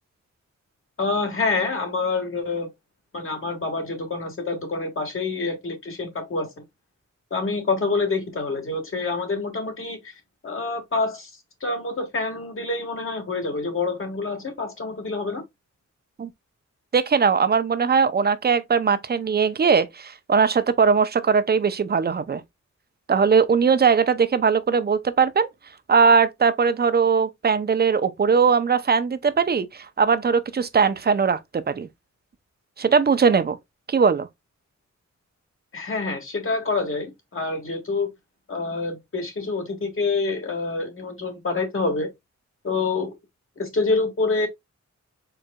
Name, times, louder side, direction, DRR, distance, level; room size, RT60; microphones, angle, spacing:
voice 1, 1.0-2.7 3.1-6.6 7.3-10.1 10.4-11.3 11.6-15.4 35.7-38.1 38.5-42.1 42.6-43.1 43.6-44.5, left 3 dB, 45° left, 1.6 m, -27 dB
voice 2, 16.9-22.4 23.1-25.5 25.9-31.9 32.8-33.6 33.9-34.3, right 5 dB, 35° right, 0.5 m, -20 dB
4.5 x 3.8 x 2.2 m
wide cardioid pair, 90°, 29 cm